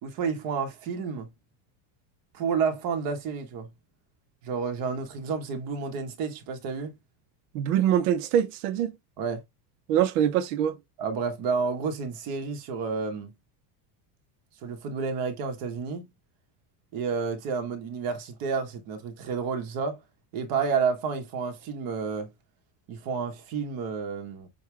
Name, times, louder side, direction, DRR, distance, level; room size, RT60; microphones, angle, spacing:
voice 1, 0.0-1.3 2.3-3.7 4.4-7.0 9.2-9.4 11.0-13.3 14.6-16.1 16.9-20.0 20.3-22.3 22.9-24.5, right 5 dB, 45° right, 1.4 m, -30 dB
voice 2, 7.5-9.0 9.9-10.8, right 10 dB, 60° right, 0.8 m, -24 dB
6.9 x 2.3 x 3.3 m
cardioid pair, 180°, 48 cm